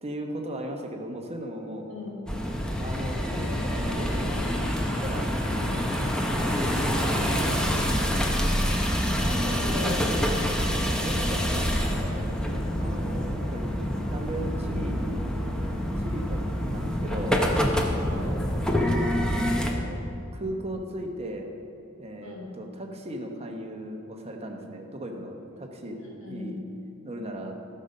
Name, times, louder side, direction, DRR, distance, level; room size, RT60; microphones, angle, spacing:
voice 1, 0.0-1.9 2.6-5.3 6.3-7.6 9.2-10.0 10.7-13.6 14.1-15.2 16.0-16.4 16.7-17.4 19.1-21.5 22.0-26.0 26.3-26.6 27.0-27.6, right 1 dB, 30° right, 3 dB, 1.0 m, -37 dB
voice 2, 1.8-2.2 5.5-5.9 8.0-9.0 9.4-10.1 13.9-14.1 18.1-18.4 22.2-22.5 26.0-26.5, left 2 dB, 65° left, -5 dB, 2.8 m, -39 dB
sound 1, 2.3-19.7, equal, 5° left, 0.8 m, -26 dB
13.0 x 6.6 x 5.5 m, 2.7 s
head